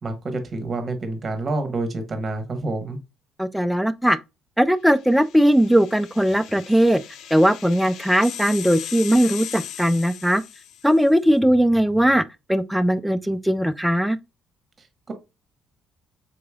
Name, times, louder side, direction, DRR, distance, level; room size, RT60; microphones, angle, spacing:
voice 1, 0.0-3.0 14.8-15.1, right 2 dB, 40° right, 1.1 m, -28 dB
voice 2, 3.4-4.2 4.6-7.0 7.3-10.4 10.8-12.2 12.5-14.2, equal, ahead, 0.3 m, -19 dB
sound 1, 5.1-11.0, left 9 dB, 70° left, 0.4 m, -38 dB
3.9 x 3.0 x 2.3 m
supercardioid pair, 60°, 0 cm